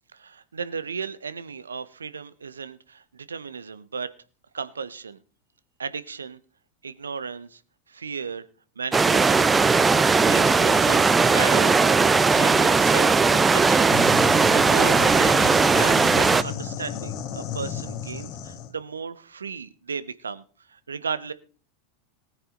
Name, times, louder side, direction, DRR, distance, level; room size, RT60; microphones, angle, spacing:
voice 1, 0.1-4.1 4.5-5.2 5.8-6.4 6.8-7.6 7.9-8.4 8.8-9.5 10.3-11.8 12.2-20.4 20.7-21.3, right 5 dB, 80° right, 15 dB, 0.8 m, -35 dB
sound 1, 8.9-16.4, right 4 dB, 15° right, 0.7 m, -18 dB
sound 2, 13.9-18.7, left 7 dB, 45° left, 2.0 m, -33 dB
19.0 x 9.5 x 3.8 m, 0.42 s
figure-of-eight pair, 85°, 0 cm